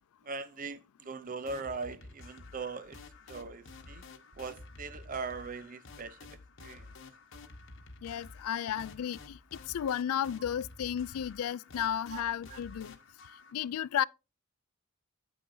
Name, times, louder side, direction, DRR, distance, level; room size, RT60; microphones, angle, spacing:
voice 1, 0.2-3.0 3.3-4.0 4.4-6.9 12.1-12.6, right 4 dB, 35° right, 0.6 m, -41 dB
sound 1, 1.5-13.5, left 3 dB, 55° left, 1.3 m, -51 dB
voice 2, 8.0-9.4 9.7-13.0 13.5-14.0, left 9 dB, 75° left, 0.3 m, -33 dB
10.0 x 8.8 x 2.7 m
head